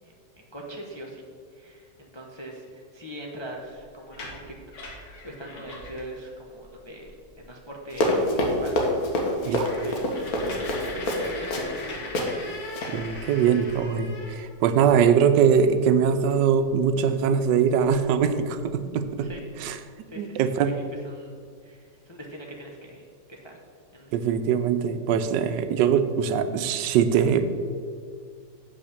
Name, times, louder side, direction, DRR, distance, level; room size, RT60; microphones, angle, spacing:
voice 1, 0.0-1.2 1.5-4.5 5.2-7.1 7.4-9.0 9.4-10.3 10.5-12.4 19.2-19.4 20.1-23.6 23.9-24.1, equal, 30° left, -1 dB, 0.5 m, -41 dB
sound 1, 4.0-6.2 6.6-6.7 7.0-7.4 7.9-8.0 8.4-8.5 8.8-8.9 9.3-14.9 16.3-16.4 16.7-18.1 18.6-18.7 19.0-19.6, left 2 dB, 85° left, 2.0 m, -40 dB
Run, 7.9-11.8 12.1-12.3 12.7-12.9, left 1 dB, 60° left, 1.6 m, -26 dB
voice 2, 12.9-19.3 19.6-19.8 20.2-20.7 24.1-27.4, right 7 dB, 85° right, 10 dB, 1.3 m, -22 dB
7.2 x 5.6 x 6.8 m, 2.1 s
omnidirectional pair, 1.9 m